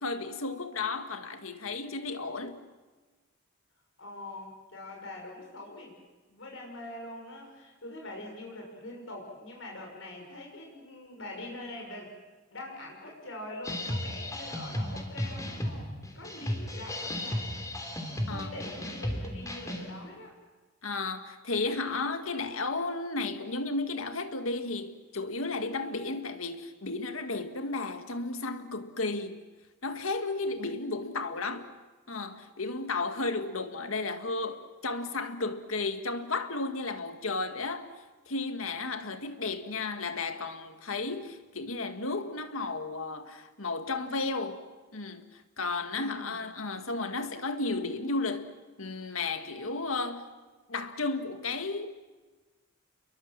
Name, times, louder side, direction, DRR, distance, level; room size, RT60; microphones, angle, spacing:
voice 1, 0.0-2.6 16.4-16.5 18.3-18.5 20.8-29.5 29.8-31.7 32.1-37.9 38.3-44.6 44.9-50.2 50.7-52.0, left 3 dB, 90° left, 2.0 m, -33 dB
voice 2, 4.0-5.9 6.3-12.1 12.5-17.5 18.3-20.3 45.9-46.4, left 1 dB, 70° left, 6.1 m, -43 dB
sound 1, 13.6-19.9, left 1 dB, 15° left, 3.5 m, -35 dB
29.0 x 22.5 x 7.5 m
head